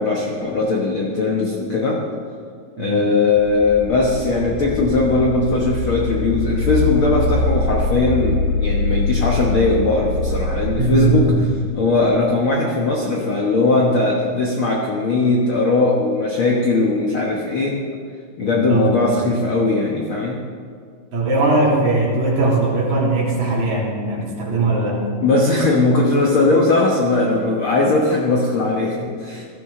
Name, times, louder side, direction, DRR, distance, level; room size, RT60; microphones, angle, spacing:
voice 1, 0.0-2.0 2.8-11.3 11.7-17.8 18.4-20.4 25.2-29.4, left 3 dB, 60° left, -2 dB, 1.4 m, -19 dB
sound 1, 3.3-12.1, left 3 dB, 80° left, 4.4 m, -23 dB
voice 2, 10.8-11.4 18.4-19.2 21.1-25.0, right 2 dB, 55° right, -5 dB, 4.1 m, -19 dB
16.5 x 14.0 x 3.7 m, 2.2 s
omnidirectional pair, 4.0 m